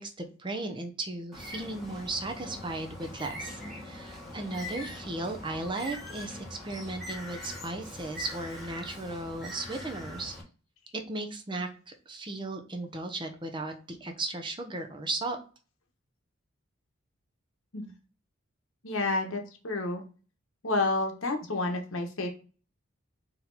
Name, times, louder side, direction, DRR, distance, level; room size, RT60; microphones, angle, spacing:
voice 1, 0.0-10.3 10.9-15.4, right 2 dB, 25° right, 4 dB, 0.6 m, -36 dB
Bird, 1.3-10.4, left 1 dB, ahead, 1.4 m, -42 dB
voice 2, 18.8-20.0 20.6-22.3, left 2 dB, 80° left, 3 dB, 1.1 m, -30 dB
4.3 x 2.9 x 3.9 m, 0.36 s
head